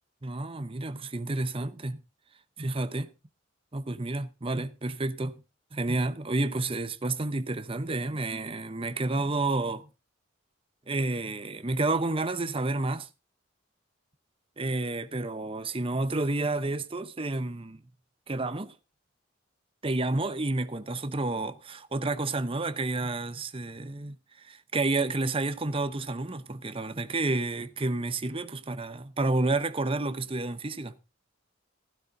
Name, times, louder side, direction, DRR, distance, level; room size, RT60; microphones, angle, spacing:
voice 1, 0.2-2.0 2.6-3.1 3.7-5.4 5.7-9.9 10.9-13.1 14.6-17.8 18.3-18.7 19.8-31.0, right 2 dB, 30° right, 0.8 m, -30 dB
16.0 x 11.5 x 2.7 m
head